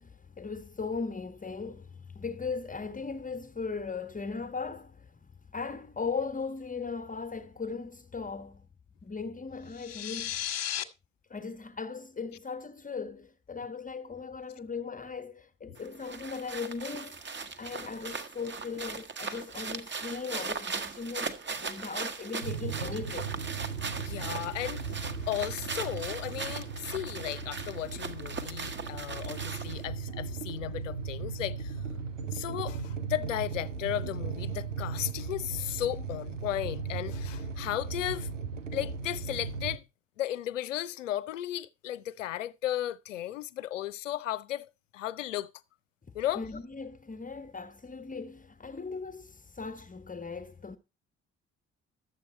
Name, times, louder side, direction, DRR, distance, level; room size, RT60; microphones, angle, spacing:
voice 1, 0.0-8.7 9.0-10.4 11.3-17.2 17.6-23.3 46.1-50.8, left 5 dB, 20° left, 1.3 m, -38 dB
sound 1, 9.7-10.8, left 11 dB, 40° left, 1.3 m, -34 dB
sound 2, 15.8-29.9, right 5 dB, 30° right, 1.5 m, -39 dB
sound 3, 22.4-39.8, right 5 dB, 90° right, 0.7 m, -37 dB
voice 2, 24.0-31.8 32.3-38.3 38.7-39.8 40.2-45.5 46.1-46.4, left 13 dB, 80° left, 0.6 m, -35 dB
12.0 x 8.3 x 4.4 m
figure-of-eight pair, 45°, 37 cm